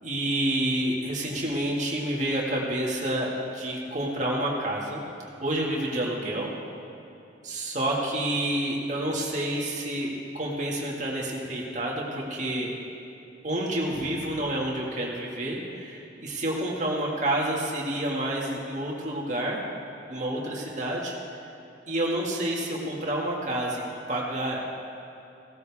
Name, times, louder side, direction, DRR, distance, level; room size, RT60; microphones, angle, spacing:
voice 1, 0.0-5.0 5.4-6.5 7.4-12.7 13.4-19.6 20.1-21.1 21.9-23.8 24.1-24.8, right 1 dB, 40° right, -3 dB, 2.1 m, -29 dB
16.5 x 13.5 x 3.6 m, 2.7 s
head